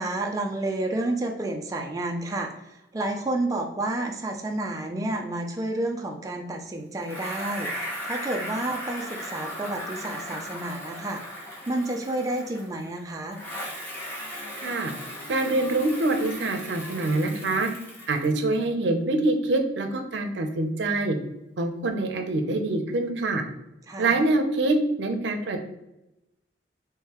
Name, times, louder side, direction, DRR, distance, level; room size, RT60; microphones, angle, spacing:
voice 1, 0.0-11.2 11.7-13.4 23.9-24.2, right 2 dB, 20° right, 2 dB, 0.4 m, -30 dB
Bicycle, 7.0-12.9 13.3-18.5, equal, 10° left, 1.0 m, -37 dB
voice 2, 14.6-14.9 15.3-17.7 18.1-21.2 21.6-23.4 24.0-25.6, right 2 dB, 75° right, 5 dB, 0.6 m, -25 dB
3.7 x 3.1 x 2.9 m, 0.90 s
head